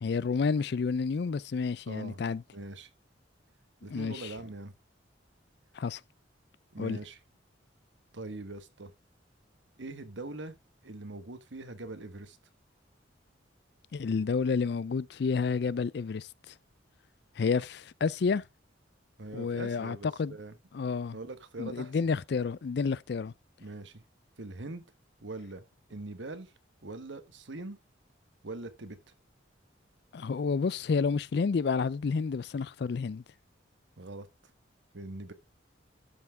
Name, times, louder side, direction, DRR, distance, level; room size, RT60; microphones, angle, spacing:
voice 1, 0.0-2.4 3.9-4.2 5.7-6.0 6.8-7.0 13.9-16.5 17.4-18.4 19.3-20.4 20.7-21.2 21.6-23.3 30.1-33.2, left 5 dB, 55° left, 0.4 m, -30 dB
voice 2, 1.8-2.2 2.5-2.9 3.8-4.7 6.7-7.2 8.1-8.9 9.8-10.5 10.8-12.4 19.2-20.6 21.1-22.0 23.6-24.0 24.4-24.8 25.2-25.6 25.9-26.5 26.8-27.8 28.4-29.0 34.0-34.3 34.9-35.3, right 2 dB, 75° right, 1.2 m, -42 dB
12.0 x 5.8 x 3.5 m
head